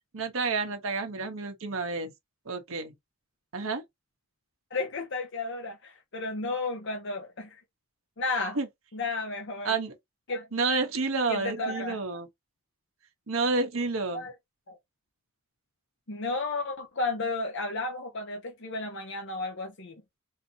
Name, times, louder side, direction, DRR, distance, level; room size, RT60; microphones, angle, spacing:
voice 1, 0.1-2.1 2.5-2.9 3.5-3.8 8.5-8.7 9.6-9.9 10.5-12.3 13.3-14.2, right 3 dB, 85° right, 1.0 m, -29 dB
voice 2, 4.7-7.6 8.2-8.6 8.9-9.7 10.3-10.5 11.3-12.0 14.1-14.3 14.7-14.8 16.1-20.0, left 3 dB, 65° left, 0.9 m, -33 dB
4.0 x 2.7 x 2.7 m
head